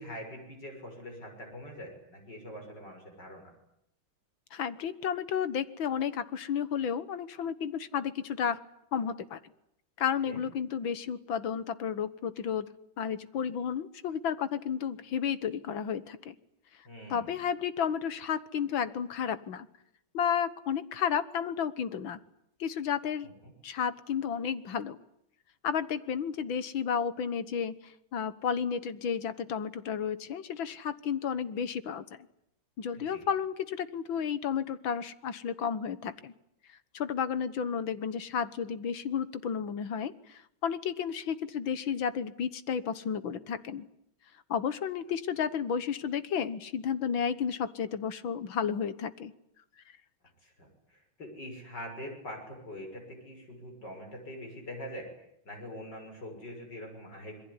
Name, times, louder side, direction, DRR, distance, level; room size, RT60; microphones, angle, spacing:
voice 1, 0.0-3.5 10.3-10.4 16.9-17.3 23.2-23.5 33.0-33.2 50.4-57.4, equal, 55° left, 3 dB, 7.1 m, -44 dB
voice 2, 4.5-8.6 8.9-9.4 10.0-12.7 13.0-16.4 17.1-19.7 20.1-22.2 22.6-23.3 23.6-25.0 25.6-32.0 32.8-36.3 36.9-43.9 44.5-49.3, left 7 dB, 70° left, 14 dB, 2.0 m, -32 dB
27.0 x 22.5 x 9.8 m, 0.76 s
omnidirectional pair, 2.3 m